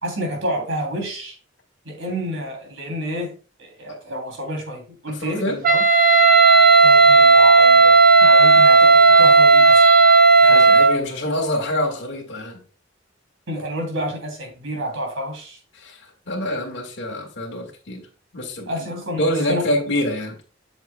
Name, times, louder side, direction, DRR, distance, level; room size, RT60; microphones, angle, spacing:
voice 1, 0.0-1.3 1.8-5.8 6.8-9.9 10.4-10.6 13.5-15.6 18.7-19.2 19.5-19.7, equal, 90° right, 1 dB, 3.0 m, -29 dB
voice 2, 5.1-5.6 10.5-12.6 15.7-18.0 18.3-18.7 19.1-20.4, left 1 dB, 65° left, -1 dB, 1.8 m, -26 dB
Wind instrument woodwind instrument, 5.6-11.0, right 3 dB, 50° right, 0.8 m, -12 dB
7.6 x 7.4 x 2.2 m, 0.38 s
head